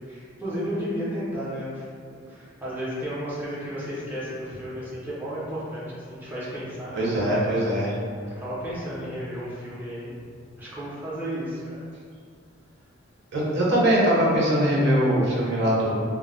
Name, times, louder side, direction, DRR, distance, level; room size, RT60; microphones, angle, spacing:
voice 1, 0.1-1.8 2.1-7.0 8.4-10.1 10.6-11.8, equal, 10° right, -10 dB, 0.5 m, -33 dB
voice 2, 6.9-8.0 13.3-15.9, equal, 60° right, -6 dB, 0.7 m, -22 dB
2.1 x 2.0 x 3.6 m, 2.1 s
head